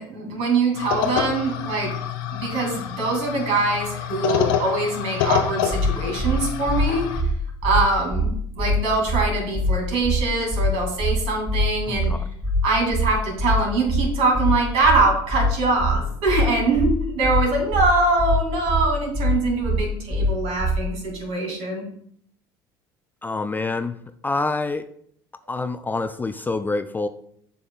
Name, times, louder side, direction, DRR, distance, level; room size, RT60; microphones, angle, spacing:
voice 1, 0.0-1.9 2.3-7.1 7.6-12.1 12.6-21.8, right 3 dB, 55° right, 0 dB, 2.5 m, -23 dB
sound 1, 0.8-7.2, left 9 dB, 65° left, 0.7 m, -27 dB
sound 2, 5.7-5.9 6.2-6.3 6.7-6.8 7.1-7.3 7.6-7.8 8.1-8.3 8.6-8.7 9.1-9.2 9.5-9.7 10.0-10.2 10.5-10.7 11.0-11.1 11.5-11.6 11.9-12.1 12.4-12.6 12.9-13.1 13.4-13.5 13.9-14.0 14.3-14.5 14.8-15.0 15.3-15.5 15.8-15.9 16.3-16.4 16.7-16.9 17.2-17.4 17.7-17.9 18.2-18.3 18.7-18.8 19.1-19.3 19.6-19.8 20.1-20.3 20.6-20.7, right 1 dB, 15° right, 1.4 m, -23 dB
voice 2, 11.9-12.3 23.2-24.0 24.2-24.9 25.5-27.1, left 3 dB, 15° left, 10 dB, 0.4 m, -26 dB
7.6 x 6.0 x 2.4 m, 0.66 s
figure-of-eight pair, 60°, 12 cm